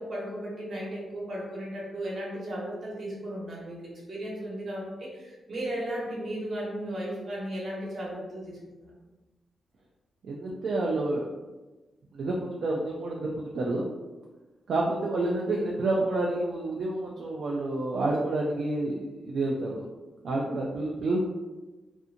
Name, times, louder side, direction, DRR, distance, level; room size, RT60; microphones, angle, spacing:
voice 1, 0.0-8.9 15.2-15.7, right 1 dB, 45° right, -4 dB, 0.9 m, -36 dB
voice 2, 10.2-11.2 12.1-13.9 14.7-19.8 20.2-21.3, right 2 dB, 60° right, -2 dB, 0.3 m, -29 dB
2.6 x 2.5 x 2.5 m, 1.2 s
wide cardioid pair, 155°, 0 cm